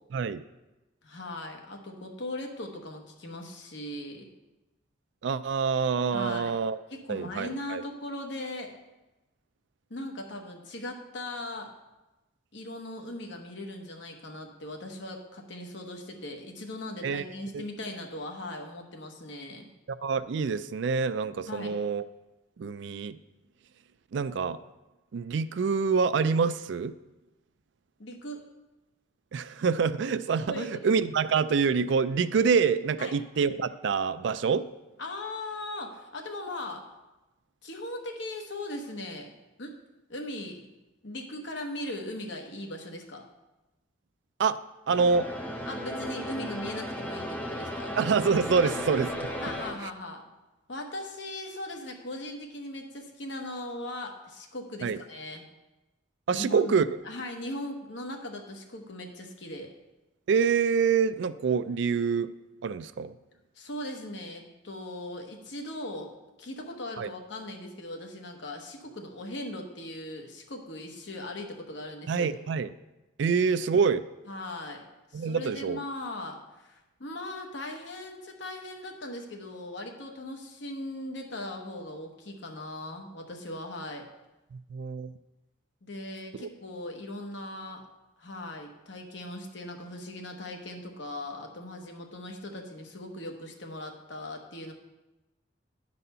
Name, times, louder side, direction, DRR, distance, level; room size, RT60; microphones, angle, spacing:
voice 1, 0.1-0.4 5.2-6.8 7.1-7.8 17.0-17.2 17.5-17.6 19.9-22.0 22.6-23.2 24.1-24.6 25.1-26.9 29.3-34.7 44.4-44.6 44.9-45.3 48.0-49.3 54.8-55.0 56.3-56.8 60.3-62.3 62.6-63.1 67.0-67.1 72.1-72.7 73.2-74.0 75.1-75.8 84.5-85.1 86.4-86.5, right 5 dB, 70° right, 14 dB, 0.3 m, -26 dB
voice 2, 1.0-4.2 6.1-6.6 6.9-8.7 9.9-11.7 12.5-19.7 21.5-21.7 28.0-28.4 30.5-30.9 33.0-33.1 35.0-36.9 37.6-39.3 39.6-39.8 40.1-40.7 41.0-43.2 45.7-48.0 48.6-48.7 49.4-50.2 50.7-55.4 56.3-56.6 57.0-59.7 63.5-66.1 66.4-72.3 74.3-74.9 75.1-84.1 85.8-87.8 88.2-94.7, left 1 dB, 70° left, 2 dB, 1.1 m, -39 dB
sound 1, 44.9-49.7, equal, 10° left, 0.7 m, -35 dB
10.0 x 4.1 x 5.5 m, 1.0 s
head